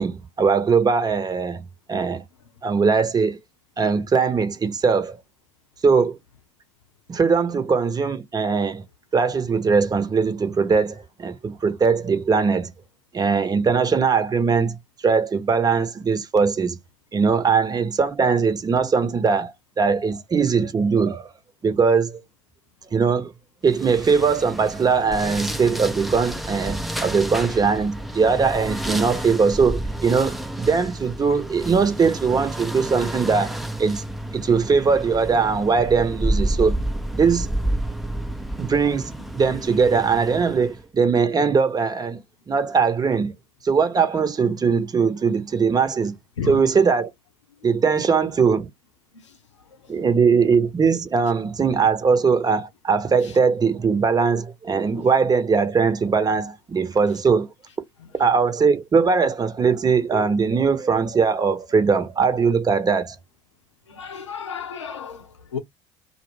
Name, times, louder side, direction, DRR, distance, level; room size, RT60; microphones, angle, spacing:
voice 1, 0.0-2.2 2.6-3.4 3.8-5.2 5.8-6.2 7.1-8.8 9.1-12.7 13.1-14.8 15.0-16.8 17.1-21.3 21.6-22.2 22.9-23.3 23.6-34.0 34.3-36.8 37.1-37.5 38.6-42.2 42.5-43.3 43.6-46.2 46.5-47.1 47.6-48.7 49.9-57.5 58.1-63.2, right 5 dB, 25° right, 0.9 m, -20 dB
sound 1, 23.7-40.8, right 1 dB, ahead, 0.5 m, -30 dB
voice 2, 63.9-65.6, left 7 dB, 80° left, 0.7 m, -33 dB
2.4 x 2.1 x 3.3 m
figure-of-eight pair, 60°, 15 cm